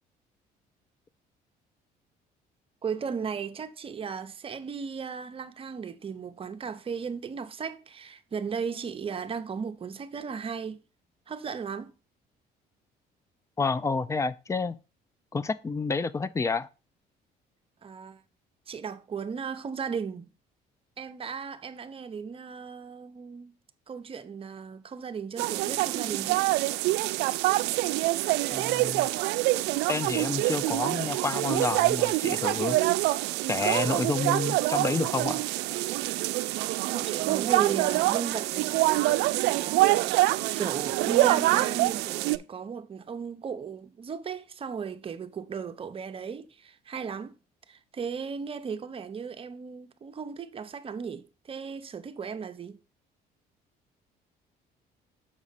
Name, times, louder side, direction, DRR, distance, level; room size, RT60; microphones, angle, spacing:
voice 1, 2.8-10.8 11.3-11.9 17.8-18.2 18.7-20.3 21.0-23.5 23.9-26.4 36.9-40.2 40.6-47.4 47.7-52.8, right 6 dB, 35° right, 0.8 m, -36 dB
voice 2, 13.6-14.8 15.3-16.7 28.5-29.1 29.9-32.8 33.5-35.4, left 4 dB, 15° left, 0.4 m, -29 dB
sound 1, 25.4-42.4, right 18 dB, 90° right, 0.4 m, -26 dB
7.4 x 4.9 x 4.0 m
cardioid pair, 110°, 17 cm